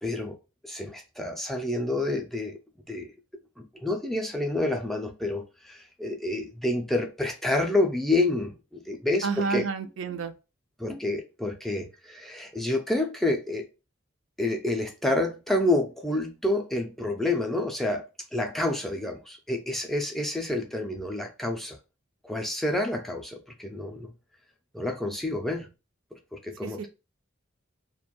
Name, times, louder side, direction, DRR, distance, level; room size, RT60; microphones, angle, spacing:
voice 1, 0.0-0.4 0.6-2.6 2.9-3.1 3.6-9.7 10.8-13.6 14.4-18.0 18.3-21.8 22.2-24.1 24.7-25.7 26.1-26.9, left 2 dB, ahead, 0.3 m, -28 dB
voice 2, 9.2-10.3 26.6-26.9, right 5 dB, 65° right, 0.4 m, -30 dB
2.4 x 2.2 x 2.9 m
head